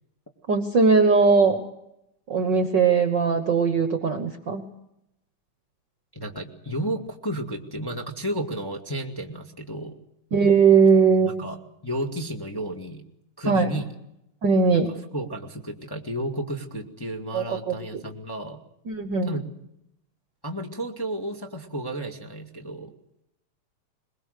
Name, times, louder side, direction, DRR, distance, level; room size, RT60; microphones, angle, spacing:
voice 1, 0.5-1.6 2.3-4.7 10.3-11.3 13.5-13.7 14.4-14.9 17.3-17.7 18.9-19.3, right 5 dB, 50° right, 7 dB, 1.5 m, -19 dB
voice 2, 6.1-10.0 10.7-10.8 11.4-13.0 13.4-13.9 14.7-14.8 15.1-18.6 19.2-19.5 20.4-22.9, right 1 dB, 10° left, 3 dB, 1.5 m, -32 dB
22.0 x 22.0 x 6.6 m, 0.81 s
omnidirectional pair, 3.3 m